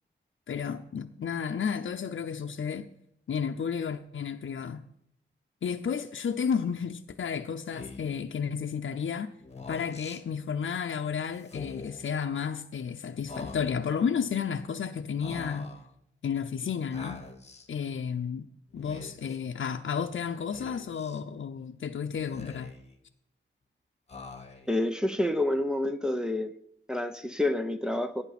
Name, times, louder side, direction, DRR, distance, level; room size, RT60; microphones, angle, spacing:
voice 1, 0.5-2.9 3.3-4.8 5.6-9.3 9.7-15.7 16.2-17.3 17.7-18.5 18.7-22.7, left 7 dB, 75° left, 0.6 m, -32 dB
Speech, 7.7-8.2 9.4-10.2 11.4-12.1 13.3-14.0 15.2-15.9 16.9-17.7 18.7-19.4 20.5-21.2 22.1-22.9 24.1-24.8, left 3 dB, 35° left, 1.5 m, -44 dB
voice 2, 24.7-26.5 26.9-28.2, left 1 dB, 5° right, 0.7 m, -28 dB
17.5 x 9.3 x 4.2 m
wide cardioid pair, 140°, 20 cm